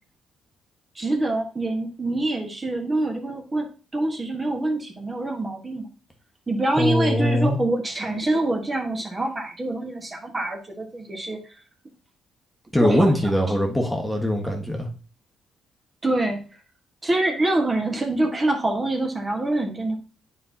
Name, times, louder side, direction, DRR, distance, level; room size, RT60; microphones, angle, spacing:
voice 1, 0.9-3.7 3.9-5.9 6.5-11.4 12.8-13.1 16.0-16.4 17.0-19.9, right 2 dB, 25° right, 2 dB, 1.4 m, -25 dB
voice 2, 6.8-7.6 12.7-14.9, equal, ahead, 1 dB, 1.4 m, -21 dB
9.2 x 4.5 x 2.8 m, 0.35 s
cardioid pair, 90°, 0 cm